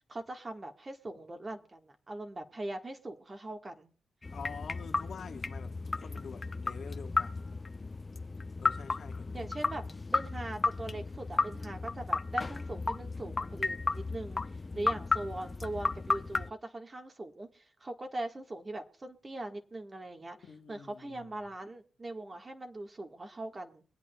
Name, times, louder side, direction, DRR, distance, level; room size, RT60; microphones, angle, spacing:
voice 1, 0.1-3.9 9.3-9.8 10.1-14.4 14.7-20.4 20.7-23.8, right 2 dB, 30° right, 1.4 m, -41 dB
sound 1, 4.2-16.5, left 3 dB, 30° left, 0.4 m, -34 dB
voice 2, 4.3-7.6 8.6-9.8 11.8-12.0 14.7-15.1 20.4-21.3, left 6 dB, 60° left, 1.2 m, -47 dB
24.0 x 8.5 x 2.2 m
supercardioid pair, 60°, 0 cm